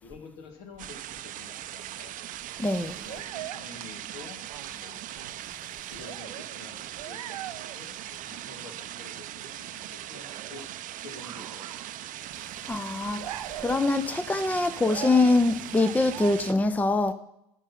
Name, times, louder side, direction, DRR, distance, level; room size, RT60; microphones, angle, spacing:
voice 1, 0.0-2.2 3.0-4.4 4.7-5.0 5.7-7.4 7.7-10.7 11.0-11.8, left 4 dB, 65° left, 2.1 m, -48 dB
sound 1, 0.8-16.5, right 12 dB, 45° right, 0.6 m, -40 dB
sound 2, 1.8-1.9 2.9-4.8 5.1-5.4 5.9-6.6 7.0-7.9 8.2-8.6 8.9-9.5 9.7-9.8 10.1-10.8 11.1-12.2 12.4-12.7 13.0-14.0 14.7-15.4 15.7-16.3, right 12 dB, 85° right, 0.5 m, -41 dB
voice 2, 2.6-3.0 12.7-17.1, left 3 dB, 10° left, 0.6 m, -24 dB
10.5 x 6.7 x 5.7 m
hypercardioid pair, 75°, 18 cm